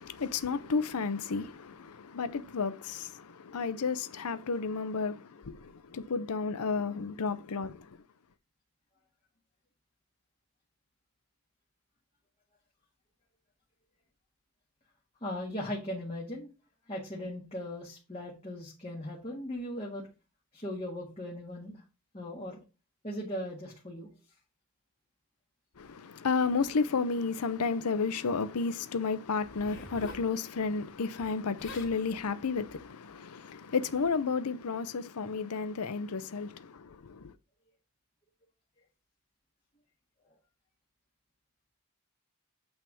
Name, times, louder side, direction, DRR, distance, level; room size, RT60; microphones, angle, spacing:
voice 1, 0.0-7.9 25.8-37.3, left 4 dB, 90° left, 0.6 m, -32 dB
voice 2, 15.2-16.5 16.9-20.0 20.5-21.8 22.1-22.6 23.0-24.1, left 1 dB, 25° left, 1.8 m, -38 dB
Zipper (clothing), 29.4-30.3 31.3-31.4 31.6-32.0 32.7-32.9, left 2 dB, 55° left, 2.6 m, -45 dB
8.8 x 3.5 x 6.1 m
head